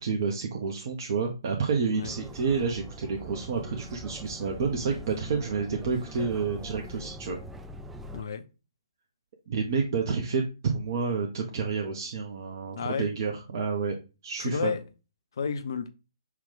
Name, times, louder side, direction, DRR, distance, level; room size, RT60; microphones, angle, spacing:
voice 1, 0.0-7.4 9.5-14.0 14.2-14.7, right 5 dB, 45° right, 0.7 m, -29 dB
sound 1, 2.0-8.2, right 1 dB, 5° right, 0.3 m, -43 dB
voice 2, 8.1-8.4 12.8-13.1 14.4-14.8 15.4-15.9, left 6 dB, 55° left, 0.6 m, -31 dB
5.8 x 2.3 x 3.8 m
figure-of-eight pair, 130°, 3 cm